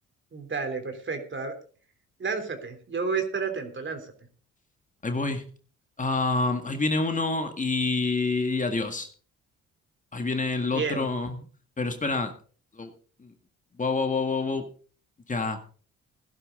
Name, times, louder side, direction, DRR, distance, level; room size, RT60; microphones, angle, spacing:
voice 1, 0.3-1.5 2.2-4.1 10.7-11.1, right 5 dB, 40° right, 3.5 m, -31 dB
voice 2, 5.0-5.5 6.0-9.1 10.1-11.5 11.8-12.4 12.7-12.9 13.2-13.3 13.8-14.7 15.3-15.6, left 3 dB, 25° left, 1.9 m, -27 dB
16.0 x 11.5 x 3.8 m
cardioid pair, 90°, 30 cm